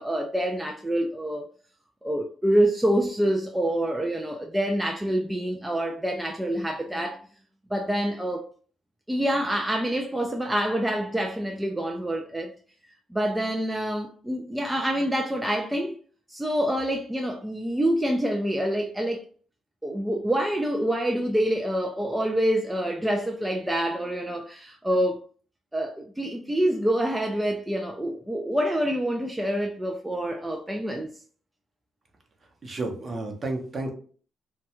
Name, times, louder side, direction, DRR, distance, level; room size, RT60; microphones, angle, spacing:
voice 1, 0.0-1.5 2.0-7.2 7.7-8.4 9.1-12.5 13.1-16.0 16.3-19.2 19.8-25.2 25.7-31.1, right 1 dB, 10° right, 0.3 m, -26 dB
voice 2, 32.6-33.9, right 2 dB, 40° right, 0.7 m, -31 dB
2.2 x 2.2 x 2.9 m
cardioid pair, 90°, 0 cm